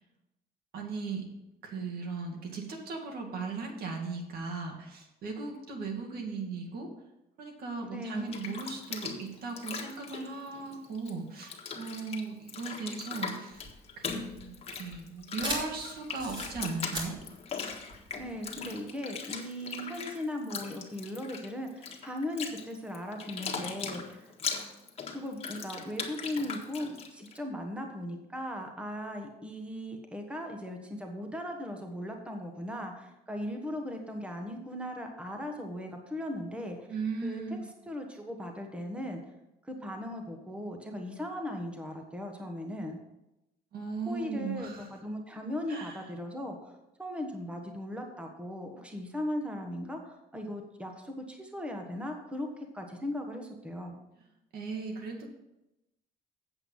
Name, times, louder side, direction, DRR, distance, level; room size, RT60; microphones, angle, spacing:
voice 1, 0.7-1.2 1.6-6.9 7.4-13.6 14.0-17.2 36.9-37.7 43.7-44.8 45.7-46.0 54.5-55.3, right 4 dB, 65° right, 2 dB, 2.2 m, -37 dB
voice 2, 7.8-8.4 18.2-24.3 25.1-36.9 37.2-39.2 39.6-43.0 44.1-46.7 47.0-54.0, left 1 dB, 5° right, 3 dB, 1.3 m, -38 dB
Bathtub (filling or washing), 8.1-11.1 11.4-27.4, left 5 dB, 35° left, 1.5 m, -40 dB
sound 1, 13.5-18.7, right 1 dB, 30° right, 3.0 m, -39 dB
8.1 x 8.0 x 5.6 m, 0.93 s
cardioid pair, 110°, 17 cm